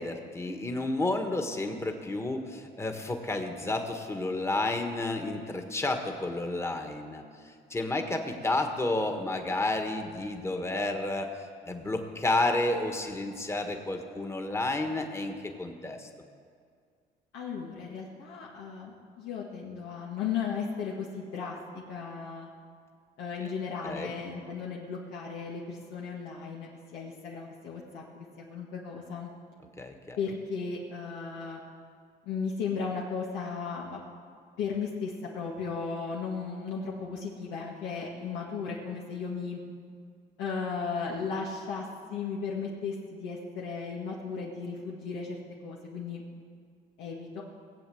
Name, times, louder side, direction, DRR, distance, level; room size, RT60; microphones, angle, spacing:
voice 1, 0.0-7.2 7.7-11.3 11.7-16.1 23.8-24.1 29.8-30.2, left 2 dB, 15° left, 5 dB, 1.5 m, -31 dB
voice 2, 17.3-22.5 23.2-29.3 30.2-31.6 32.3-34.0 34.6-39.6 40.4-46.2 47.0-47.4, left 5 dB, 90° left, -3 dB, 1.8 m, -35 dB
18.5 x 8.0 x 7.8 m, 2.1 s
cardioid pair, 110°, 17 cm